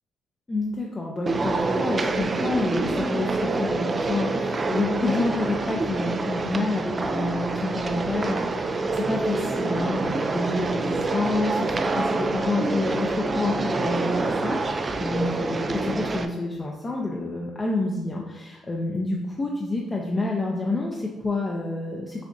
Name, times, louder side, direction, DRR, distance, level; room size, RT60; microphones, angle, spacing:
voice 1, 0.5-22.2, left 2 dB, 25° left, -2 dB, 0.5 m, -28 dB
sound 1, 1.3-16.3, right 3 dB, 35° right, 0.3 m, -26 dB
6.5 x 2.5 x 2.6 m, 1.2 s
cardioid pair, 90°, 0 cm